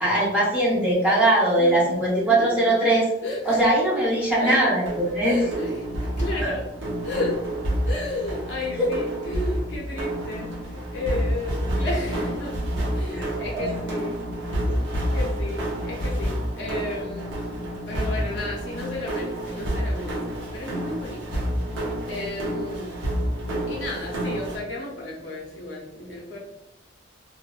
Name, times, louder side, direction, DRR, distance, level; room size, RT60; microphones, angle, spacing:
voice 1, 0.0-3.1 3.5-5.4 6.4-6.5 8.7-8.9 13.1-13.6 14.6-14.7, right 1 dB, 5° right, -7 dB, 0.7 m, -21 dB
voice 2, 2.4-3.0 3.2-3.7 4.4-4.6 5.2-6.6 7.0-12.6 12.9-14.2 14.5-21.5 22.1-22.9 23.7-26.4, left 2 dB, 65° left, -2 dB, 0.6 m, -33 dB
sound 1, 4.9-24.6, equal, 75° right, 0.7 m, -29 dB
2.5 x 2.0 x 2.3 m, 0.94 s
head